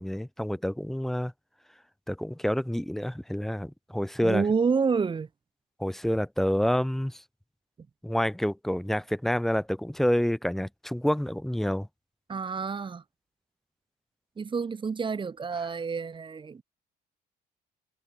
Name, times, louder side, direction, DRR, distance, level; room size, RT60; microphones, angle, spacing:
voice 1, 0.0-1.3 2.1-4.5 5.8-7.2 8.0-11.9, equal, ahead, 0.5 m, -28 dB
voice 2, 4.2-5.3 12.3-13.0 14.4-16.6, right 5 dB, 30° right, 2.3 m, -28 dB
cardioid pair, 110°, 17 cm